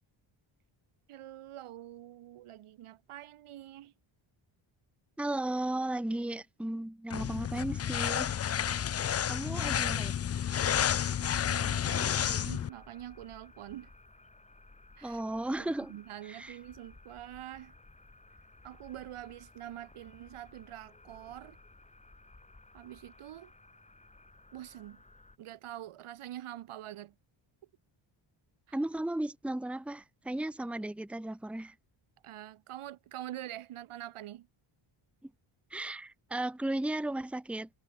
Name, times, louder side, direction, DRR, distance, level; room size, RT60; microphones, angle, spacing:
voice 1, 1.1-3.9 10.9-13.9 15.0-15.2 15.6-17.8 18.6-21.6 22.7-23.5 24.5-25.0 25.4-27.2 28.7-28.8 32.2-34.5, right 13 dB, 80° right, 2.2 m, -45 dB
voice 2, 5.2-8.4 9.3-10.1 15.0-15.9 16.2-16.6 28.7-31.7 35.2-35.3 35.7-37.7, right 1 dB, ahead, 1.0 m, -35 dB
sound 1, 7.1-12.7, left 9 dB, 30° left, 0.5 m, -30 dB
sound 2, 10.7-25.4, left 2 dB, 15° left, 4.9 m, -57 dB
cardioid pair, 140°, 50 cm